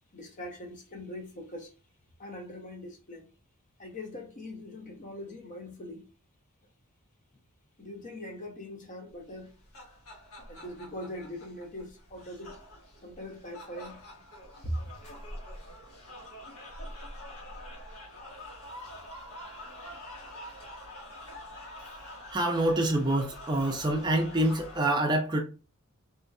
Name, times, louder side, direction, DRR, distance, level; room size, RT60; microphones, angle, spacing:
voice 1, 0.1-1.7 2.2-3.3 3.8-6.1 7.8-9.6 10.5-12.6 13.0-14.0 14.6-14.9, left 1 dB, 35° left, 0.7 m, -41 dB
sound 1, 9.4-24.8, left 1 dB, 85° left, 1.4 m, -46 dB
voice 2, 22.3-25.4, right 1 dB, 20° right, 0.5 m, -26 dB
3.5 x 2.7 x 2.2 m
head